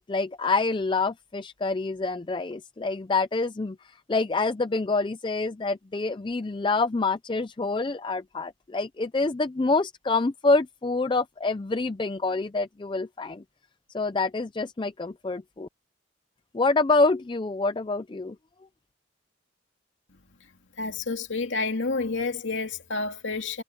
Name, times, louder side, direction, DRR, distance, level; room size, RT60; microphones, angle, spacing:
voice 1, 0.0-13.4 13.9-15.7 16.5-18.4, left 3 dB, 25° left, 0.4 m, -26 dB
voice 2, 20.8-23.6, left 3 dB, 70° left, 2.6 m, -29 dB
head